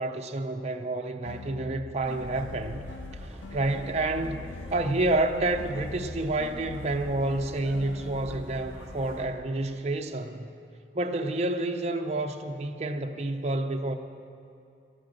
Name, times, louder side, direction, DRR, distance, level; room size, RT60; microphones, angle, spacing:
voice 1, 0.0-2.8 3.2-10.5 10.9-13.9, right 2 dB, 40° right, 4 dB, 0.7 m, -29 dB
sound 1, 1.2-5.2 5.6-8.4, left 6 dB, 70° left, 0.3 m, -44 dB
sound 2, 2.0-9.2, equal, 15° right, 2.5 m, -43 dB
12.5 x 12.0 x 6.5 m, 2.7 s
head